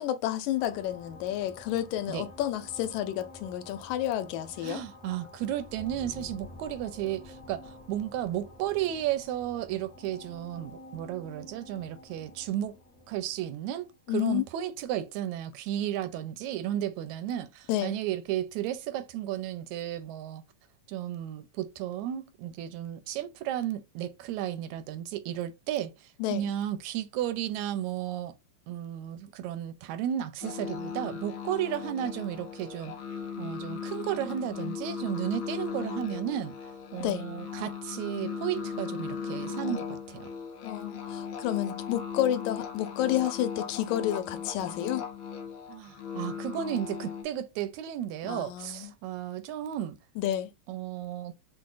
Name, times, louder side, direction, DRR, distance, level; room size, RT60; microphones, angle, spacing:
voice 1, 0.0-4.8 14.1-14.4 17.7-18.0 26.2-26.4 37.0-37.3 40.6-45.1 48.2-48.9 50.2-50.5, left 12 dB, 90° left, 2.0 m, -30 dB
sound 1, 0.6-14.7, left 2 dB, 45° left, 1.0 m, -49 dB
voice 2, 4.6-12.8 13.1-20.4 20.9-28.3 28.7-32.9 33.4-36.5 36.9-40.3 45.7-50.0 50.7-51.3, right 11 dB, 80° right, 1.8 m, -33 dB
sound 2, 30.4-47.2, left 6 dB, 65° left, 1.3 m, -37 dB
5.9 x 2.1 x 2.4 m
omnidirectional pair, 3.3 m